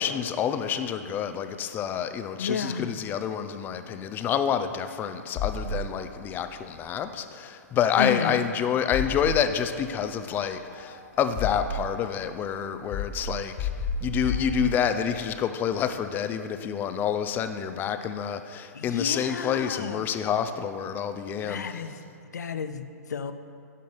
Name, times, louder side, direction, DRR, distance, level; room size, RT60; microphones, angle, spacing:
voice 1, 0.0-13.7 14.0-21.7, left 8 dB, 20° left, 9 dB, 0.4 m, -28 dB
voice 2, 2.4-3.0 8.0-8.4 18.7-20.0 21.4-22.0 22.3-23.3, left 6 dB, 85° left, 10 dB, 0.5 m, -31 dB
sound 1, 5.4-6.2 8.9-9.8 10.7-12.0 12.9-15.1, left 3 dB, 40° left, 1.3 m, -32 dB
10.5 x 5.2 x 4.0 m, 2.5 s
hypercardioid pair, 130°, 9 cm